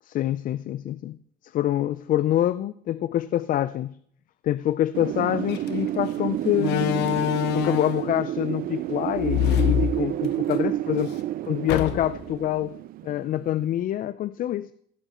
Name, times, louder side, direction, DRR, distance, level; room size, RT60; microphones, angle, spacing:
voice 1, 0.1-1.2 1.4-4.0 4.4-11.1 11.5-12.8 13.0-14.7, left 12 dB, 55° left, 15 dB, 0.4 m, -26 dB
Wind, 4.9-13.7, right 13 dB, 60° right, 0.4 m, -29 dB
Slam, 5.5-5.7 6.6-8.1 9.2-10.6 10.9-11.0 11.7-12.3, left 11 dB, 85° left, 1.1 m, -25 dB
16.0 x 8.1 x 4.3 m, 0.65 s
cardioid pair, 110°, 17 cm